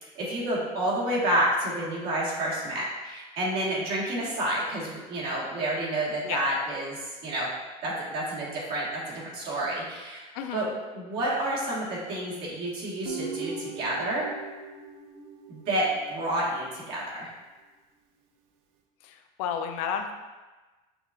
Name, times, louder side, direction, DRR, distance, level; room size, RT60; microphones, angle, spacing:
voice 1, 0.0-7.5 7.8-10.3 10.5-10.7 10.9-14.3 15.5-17.3, right 1 dB, 65° right, -6 dB, 1.4 m, -29 dB
voice 2, 10.3-10.7 19.0-20.1, left 7 dB, 85° left, 6 dB, 0.4 m, -32 dB
Guitar, 13.0-16.3, right 4 dB, 85° right, 0.5 m, -39 dB
5.8 x 2.4 x 2.4 m, 1.2 s
supercardioid pair, 115°, 18 cm